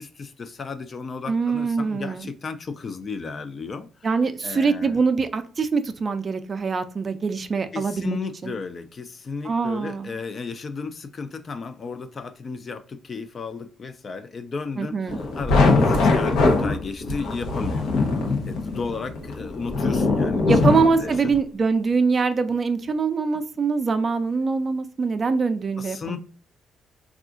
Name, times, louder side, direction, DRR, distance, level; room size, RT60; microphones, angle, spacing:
voice 1, 0.0-5.0 7.7-18.0 18.4-20.6 20.9-21.1 25.8-26.2, left 4 dB, 40° left, 10 dB, 0.4 m, -34 dB
voice 2, 1.3-2.3 4.0-8.2 8.4-8.5 9.4-10.1 14.8-15.2 20.5-26.2, right 4 dB, 40° right, 9 dB, 0.4 m, -23 dB
sound 1, 15.1-21.4, left 3 dB, 85° left, 0.7 m, -21 dB
3.6 x 2.4 x 2.4 m, 0.42 s
cardioid pair, 90°, 0 cm